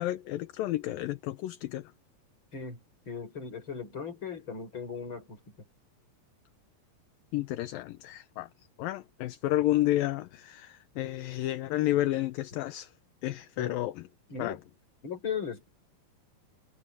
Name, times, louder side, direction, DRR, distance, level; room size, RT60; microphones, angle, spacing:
voice 1, 0.0-1.9 7.3-8.5 8.8-12.9 13.2-13.9 14.4-14.6, left 15 dB, 75° left, 2.4 m, -31 dB
voice 2, 2.5-5.6 13.6-13.8 14.3-14.6 15.0-15.7, left 6 dB, 30° left, 6.3 m, -37 dB
omnidirectional pair, 4.5 m